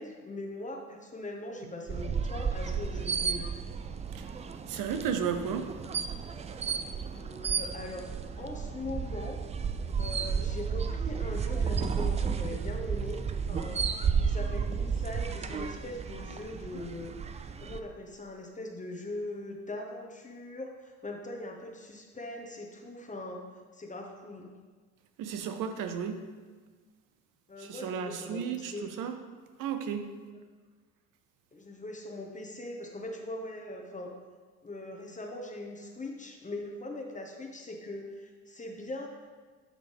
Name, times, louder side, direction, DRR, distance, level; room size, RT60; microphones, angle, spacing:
voice 1, 0.0-3.4 7.1-8.0 8.4-9.4 10.0-13.2 13.5-13.9 14.2-17.1 17.6-23.4 23.7-24.5 27.5-28.8 31.5-34.1 34.6-39.1, left 2 dB, 20° left, 1 dB, 1.1 m, -41 dB
sound 1, 1.9-17.8, right 6 dB, 20° right, 0.3 m, -32 dB
voice 2, 4.7-5.7 25.2-26.2 27.6-29.2 29.6-30.1, right 7 dB, 60° right, 8 dB, 0.8 m, -33 dB
11.0 x 3.8 x 3.4 m, 1.4 s
hypercardioid pair, 60°, 36 cm